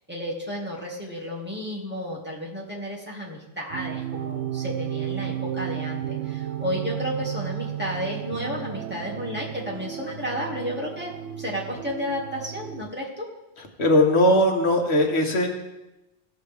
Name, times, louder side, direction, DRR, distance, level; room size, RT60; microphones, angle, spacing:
voice 1, 0.1-11.1 11.4-13.3, equal, 10° right, -4 dB, 2.0 m, -32 dB
sound 1, 3.7-12.9, right 11 dB, 85° right, 0.9 m, -33 dB
voice 2, 13.8-15.5, left 1 dB, 80° left, 3 dB, 1.5 m, -19 dB
17.0 x 6.8 x 3.4 m, 0.98 s
omnidirectional pair, 1.1 m